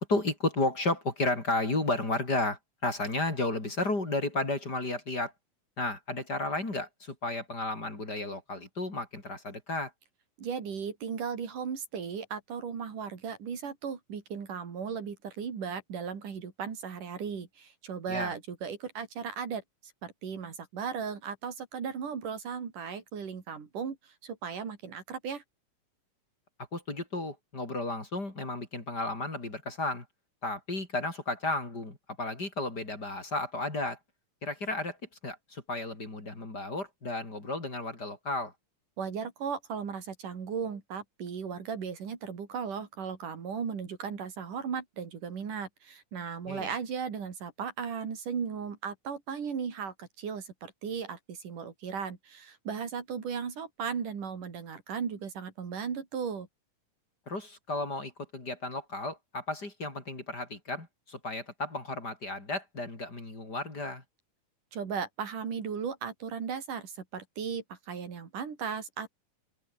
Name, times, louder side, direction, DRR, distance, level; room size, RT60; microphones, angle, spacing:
voice 1, 0.0-5.3 5.8-9.9 18.1-18.3 26.7-30.1 30.4-34.0 34.4-35.0 35.2-38.5 46.4-46.7 57.3-64.0, left 2 dB, 30° left, 5.2 m, -33 dB
voice 2, 10.4-19.6 20.0-24.0 24.2-25.4 39.0-56.5 64.7-69.1, right 6 dB, 75° right, 4.9 m, -36 dB
open air
omnidirectional pair, 3.7 m